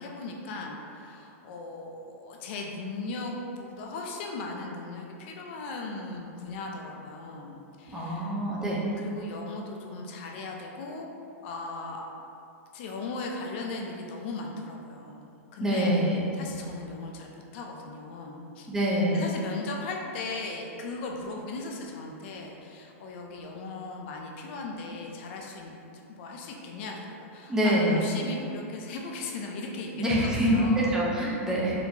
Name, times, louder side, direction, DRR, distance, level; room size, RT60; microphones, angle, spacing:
voice 1, 0.0-8.3 9.0-11.1 11.4-12.0 12.7-16.0 16.3-18.7 19.1-25.7 26.1-30.9, left 3 dB, 50° left, 0 dB, 0.5 m, -38 dB
voice 2, 7.9-8.8 15.6-16.2 18.7-19.2 27.5-28.1 30.0-31.8, equal, 5° right, -6 dB, 0.6 m, -25 dB
4.2 x 2.7 x 2.7 m, 2.6 s
supercardioid pair, 145°, 8 cm